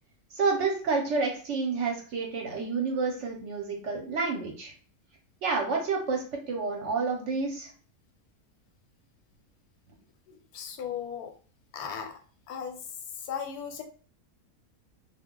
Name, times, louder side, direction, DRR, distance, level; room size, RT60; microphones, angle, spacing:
voice 1, 0.3-4.7 5.4-7.7, right 4 dB, 60° right, 1 dB, 0.9 m, -29 dB
voice 2, 10.3-11.3 11.7-12.2 12.5-12.8 13.2-13.8, left 7 dB, 90° left, 5 dB, 1.1 m, -37 dB
2.4 x 2.1 x 3.6 m, 0.41 s
omnidirectional pair, 1.6 m